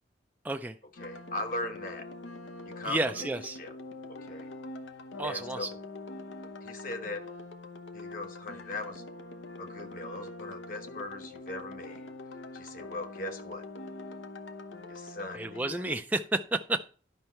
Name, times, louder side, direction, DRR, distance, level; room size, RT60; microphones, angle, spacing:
sound 1, 1.0-16.0, left 2 dB, 80° left, 0.8 m, -44 dB
voice 1, 1.0-2.1 2.7-3.3 3.6-3.7 4.1-4.5 5.2-5.7 6.6-7.2 7.9-9.0 9.6-12.0 12.5-13.6 14.9-15.6, left 2 dB, 45° left, 6 dB, 1.1 m, -39 dB
voice 2, 2.8-3.6 5.2-5.7 15.3-16.9, right 2 dB, 10° right, 5 dB, 0.3 m, -31 dB
10.5 x 5.4 x 4.4 m, 0.39 s
head